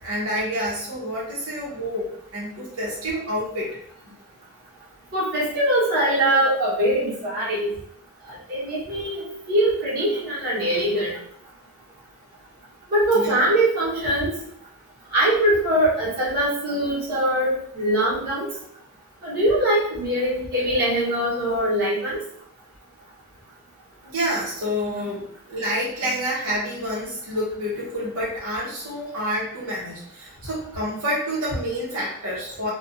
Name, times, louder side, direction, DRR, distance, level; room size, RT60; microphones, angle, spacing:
voice 1, 0.0-3.7 13.1-13.4 24.0-32.7, equal, 80° right, -6 dB, 0.9 m, -28 dB
voice 2, 5.1-7.7 8.3-11.1 12.9-14.3 15.1-18.5 19.2-22.2 24.9-25.1, right 1 dB, 45° right, -8 dB, 1.1 m, -22 dB
2.5 x 2.2 x 2.6 m, 0.67 s
head